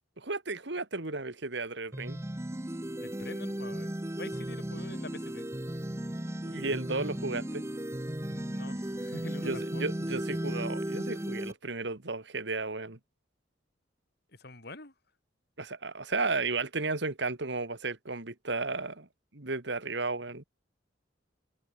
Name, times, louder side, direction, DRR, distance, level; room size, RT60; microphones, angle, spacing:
voice 1, 0.2-2.2 6.4-7.6 9.4-13.0 15.6-19.1 19.3-20.4, right 3 dB, 60° right, 2.0 m, -34 dB
sound 1, 1.9-11.5, right 1 dB, 15° right, 0.9 m, -35 dB
voice 2, 3.0-5.5 8.2-10.0 14.3-14.9, left 2 dB, 55° left, 3.9 m, -46 dB
head